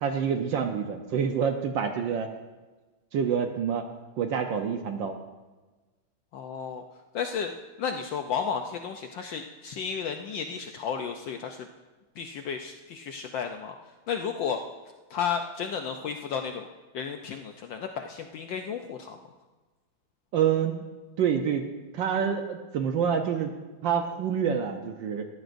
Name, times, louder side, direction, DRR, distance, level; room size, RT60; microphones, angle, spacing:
voice 1, 0.0-2.3 3.1-3.9 4.2-5.1 20.3-20.8 21.2-21.6 21.9-23.5 23.8-25.3, right 7 dB, 70° right, 5 dB, 1.4 m, -27 dB
voice 2, 6.3-6.8 7.1-7.5 7.8-11.7 12.2-14.6 15.1-16.7 16.9-19.2, left 6 dB, 70° left, 5 dB, 1.3 m, -33 dB
19.0 x 14.0 x 2.6 m, 1.2 s
omnidirectional pair, 2.3 m